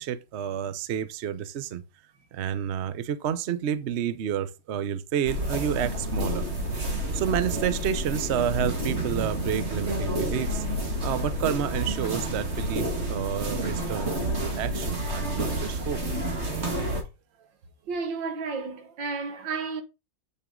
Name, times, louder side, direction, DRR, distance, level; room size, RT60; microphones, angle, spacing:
voice 1, 0.0-1.8 2.3-6.4 7.1-10.6 11.0-16.0, right 9 dB, 55° right, 0.7 m, -30 dB
sound 1, 5.3-17.0, right 1 dB, 40° right, 1.8 m, -29 dB
voice 2, 17.9-19.8, right 4 dB, 80° right, 2.0 m, -32 dB
8.5 x 6.0 x 3.8 m
omnidirectional pair, 2.0 m